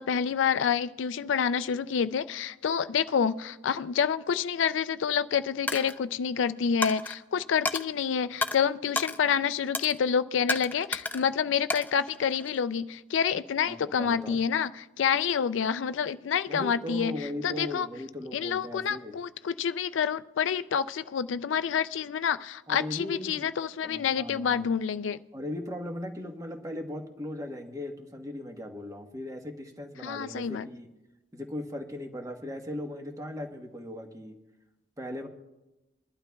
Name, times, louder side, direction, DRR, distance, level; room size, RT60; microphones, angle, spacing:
voice 1, 0.0-17.9 18.3-25.2 30.0-30.7, left 7 dB, 75° left, 0.4 m, -28 dB
Coin (dropping), 5.7-6.0 6.8-7.2 7.7-7.9 8.4-8.6 9.0-9.2 9.7-10.0 10.5-11.3 11.7-12.6, left 2 dB, 10° left, 0.4 m, -31 dB
voice 2, 13.6-14.4 16.5-19.1 22.7-23.5 23.8-24.6 25.3-30.9 31.3-34.4 35.0-35.3, left 1 dB, 20° right, 1.2 m, -38 dB
23.0 x 12.0 x 2.3 m
head